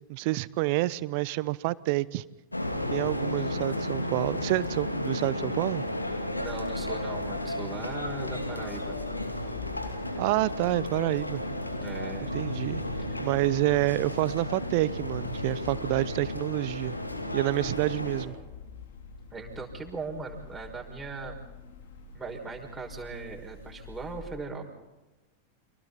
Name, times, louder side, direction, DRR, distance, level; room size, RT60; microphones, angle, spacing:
voice 1, 0.0-2.2 2.9-5.8 10.2-11.4 12.2-12.8 13.2-17.0 17.3-18.4, right 19 dB, 45° right, 21 dB, 0.7 m, -28 dB
sound 1, 2.5-18.3, left 1 dB, 85° left, 2.6 m, -33 dB
sound 2, 6.0-24.4, left 6 dB, 60° left, 3.1 m, -47 dB
voice 2, 6.4-9.0 11.8-12.4 13.1-13.3 19.3-21.4 22.1-24.7, right 4 dB, 10° right, 0 dB, 5.8 m, -39 dB
30.0 x 24.5 x 4.2 m, 1.2 s
figure-of-eight pair, 90°, 0 cm